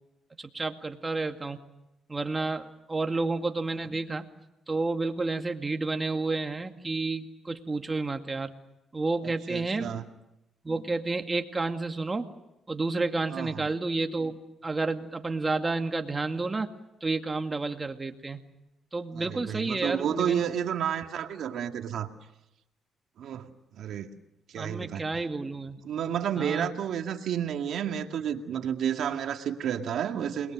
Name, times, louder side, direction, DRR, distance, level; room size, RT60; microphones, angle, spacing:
voice 1, 0.4-1.6 2.1-4.3 4.7-8.5 8.9-9.9 10.6-12.3 12.7-14.3 14.6-16.7 17.0-18.4 18.9-20.5 24.6-25.8 26.4-26.7, right 3 dB, 25° right, 5 dB, 2.3 m, -30 dB
voice 2, 9.2-10.0 13.3-13.7 19.2-22.1 23.2-24.1 24.5-25.0 25.8-30.5, right 9 dB, 70° right, 5 dB, 2.1 m, -31 dB
29.0 x 22.0 x 6.5 m, 0.90 s
cardioid pair, 90°, 0 cm